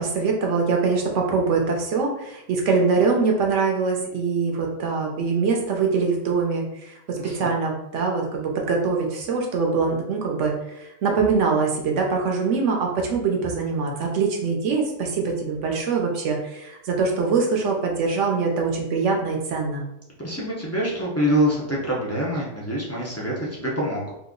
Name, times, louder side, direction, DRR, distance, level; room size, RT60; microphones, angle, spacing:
voice 1, 0.0-19.8, right 4 dB, 65° right, 1 dB, 0.9 m, -23 dB
voice 2, 7.2-7.5 20.2-24.1, equal, 25° left, -6 dB, 0.3 m, -25 dB
2.9 x 2.4 x 3.7 m, 0.82 s
omnidirectional pair, 1.4 m